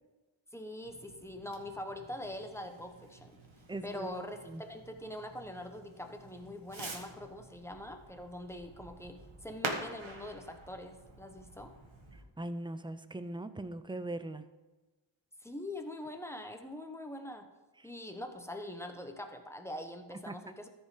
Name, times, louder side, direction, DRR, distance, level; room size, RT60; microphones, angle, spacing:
voice 1, 0.5-3.4 3.8-11.7 15.4-17.5 17.8-20.7, left 1 dB, 5° left, 5 dB, 1.0 m, -43 dB
Fireworks, 0.8-12.2, right 2 dB, 70° right, 1.7 m, -47 dB
voice 2, 3.7-4.6 12.4-14.5 20.3-20.4, right 1 dB, 10° right, 11 dB, 0.5 m, -40 dB
13.5 x 5.4 x 5.1 m, 1.2 s
wide cardioid pair, 75°, 48 cm